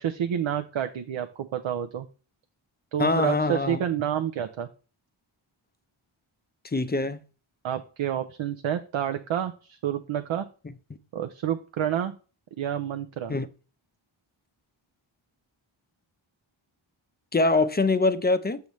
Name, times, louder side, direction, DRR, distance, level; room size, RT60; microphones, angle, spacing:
voice 1, 0.0-2.1 2.9-4.7 7.6-10.5 11.1-12.1 12.6-13.3, right 9 dB, 70° right, 0.6 m, -29 dB
voice 2, 3.0-3.8 6.7-7.2 13.3-13.5 17.3-18.6, left 3 dB, 20° left, 0.5 m, -23 dB
6.9 x 6.4 x 3.1 m
wide cardioid pair, 80°, 49 cm